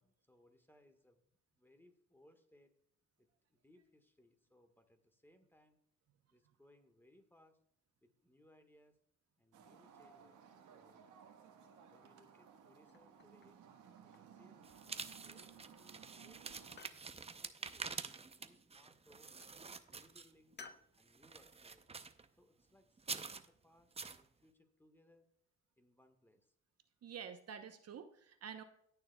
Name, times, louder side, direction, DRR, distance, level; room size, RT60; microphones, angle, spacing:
voice 1, 0.0-2.7 3.2-5.8 6.3-7.6 8.0-9.0 9.4-10.4 10.7-11.1 11.8-13.6 14.0-19.4 19.9-20.6 20.9-21.8 22.4-25.3 25.8-26.5, left 1 dB, 5° left, 7 dB, 1.4 m, -68 dB
sound 1, 9.5-16.8, right 7 dB, 85° right, 1.4 m, -60 dB
sound 2, 12.9-13.6 14.0-14.6 15.4-15.9 16.2-17.1 18.5-19.0 19.4-19.6 20.6-20.9, left 5 dB, 35° left, 0.8 m, -58 dB
sound 3, 14.6-20.5 21.0-22.3 23.0-23.5 23.9-24.2, right 4 dB, 20° right, 0.6 m, -47 dB
voice 2, 27.0-28.6, right 7 dB, 55° right, 7 dB, 0.9 m, -49 dB
18.5 x 6.7 x 2.3 m, 0.72 s
cardioid pair, 90°, 30 cm